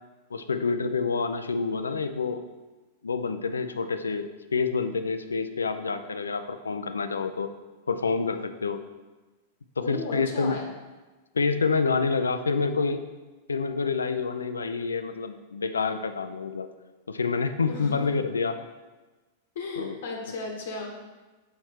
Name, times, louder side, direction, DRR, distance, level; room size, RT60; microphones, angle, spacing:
voice 1, 0.3-2.4 3.0-7.5 7.9-8.8 9.8-10.6 11.3-13.0 13.5-16.7 17.1-18.6 19.8-20.0, left 4 dB, 85° left, 9 dB, 0.4 m, -27 dB
voice 2, 9.8-10.6 17.7-18.0 19.5-20.9, left 3 dB, 65° left, 1 dB, 1.0 m, -35 dB
5.8 x 4.3 x 4.6 m, 1.2 s
figure-of-eight pair, 95°, 0 cm